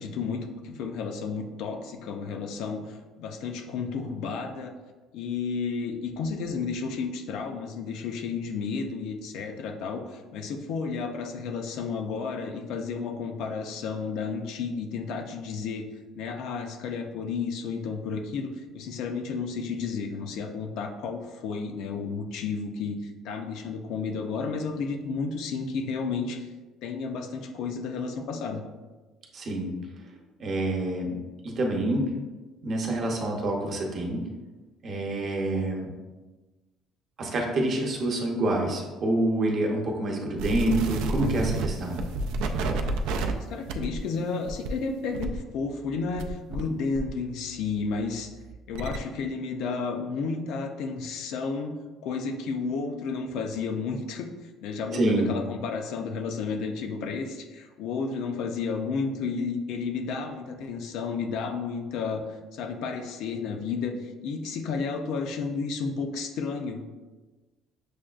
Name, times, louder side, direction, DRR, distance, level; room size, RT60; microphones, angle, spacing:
voice 1, 0.0-4.7 5.1-15.9 16.1-26.5 26.8-28.6 43.3-48.3 48.7-51.8 52.0-54.3 54.6-62.2 62.5-66.8, left 5 dB, 75° left, 4 dB, 0.4 m, -32 dB
voice 2, 29.3-29.7 30.4-31.2 31.4-32.1 32.6-34.2 34.8-35.9 37.2-42.0 54.9-55.3, right 1 dB, 45° right, 0 dB, 0.8 m, -27 dB
sound 1, 40.4-46.7 46.9-49.0, right 2 dB, 85° right, 0.3 m, -31 dB
6.4 x 2.2 x 2.4 m, 1.2 s
cardioid pair, 125°, 0 cm